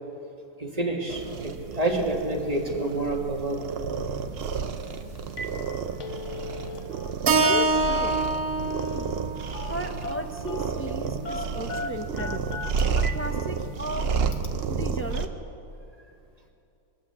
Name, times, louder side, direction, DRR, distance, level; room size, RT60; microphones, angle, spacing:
voice 1, 0.6-3.6, right 2 dB, 25° right, 0 dB, 1.7 m, -28 dB
sound 1, 1.1-15.3, right 5 dB, 55° right, 0.8 m, -31 dB
Telephone, 4.8-4.9 5.2-5.6 5.8-7.1 7.4-8.4 9.5-9.8 10.0-10.7 11.2-13.2 13.6-13.7 14.3-14.5, left 2 dB, 55° left, 1.1 m, -36 dB
Keyboard (musical), 7.3-11.5, right 3 dB, 80° right, 1.5 m, -27 dB
voice 2, 7.4-8.1 8.9-9.1 9.6-12.6 13.0-14.1 14.7-15.3, equal, 15° left, 3 dB, 0.4 m, -35 dB
21.5 x 8.5 x 8.0 m, 2.7 s
omnidirectional pair, 1.6 m